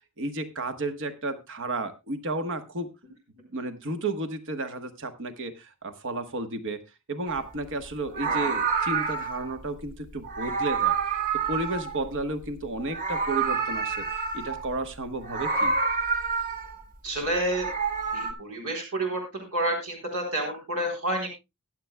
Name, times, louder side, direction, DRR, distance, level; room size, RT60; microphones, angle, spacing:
voice 1, 0.2-2.9 3.5-6.8 7.1-10.9 11.5-15.8, right 2 dB, 60° right, 9 dB, 1.3 m, -32 dB
Meow, 7.3-7.5 8.1-9.5 10.2-12.5 12.8-14.7 15.2-16.8 17.4-18.3, right 5 dB, 40° right, 1.5 m, -28 dB
voice 2, 17.0-17.7 18.1-19.2 19.5-21.3, right 1 dB, 80° right, 0 dB, 3.8 m, -29 dB
23.0 x 7.7 x 2.3 m, 0.23 s
head